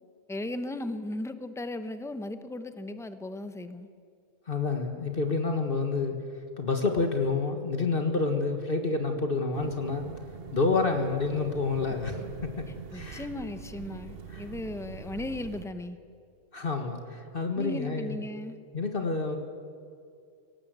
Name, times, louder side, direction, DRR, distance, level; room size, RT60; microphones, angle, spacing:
voice 1, 0.3-3.9 12.9-16.0 17.6-18.6, left 1 dB, 5° left, 10 dB, 0.7 m, -36 dB
voice 2, 4.5-6.2 6.6-10.1 10.5-13.3 14.3-14.4 16.5-18.2 18.7-19.4, left 3 dB, 40° left, 5 dB, 1.7 m, -28 dB
sound 1, 9.5-15.7, right 7 dB, 50° right, 1.0 m, -43 dB
23.5 x 18.0 x 8.1 m, 2.3 s
omnidirectional pair, 1.4 m